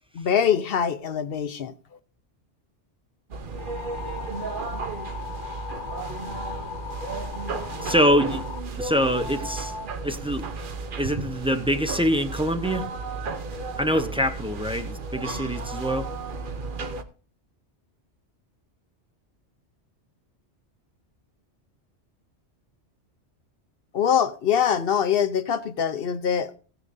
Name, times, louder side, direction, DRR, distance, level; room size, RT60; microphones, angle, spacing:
voice 1, 0.1-1.7 23.9-26.6, left 8 dB, 60° left, 0.8 m, -23 dB
sound 1, 3.3-17.0, right 3 dB, 50° right, 1.0 m, -33 dB
sound 2, 3.6-8.6, left 8 dB, 85° left, 1.1 m, -38 dB
voice 2, 7.5-8.5 8.7-9.7 10.0-10.5 11.0-12.9 13.8-16.1, equal, 5° right, 0.8 m, -25 dB
16.5 x 9.7 x 2.6 m
omnidirectional pair, 1.2 m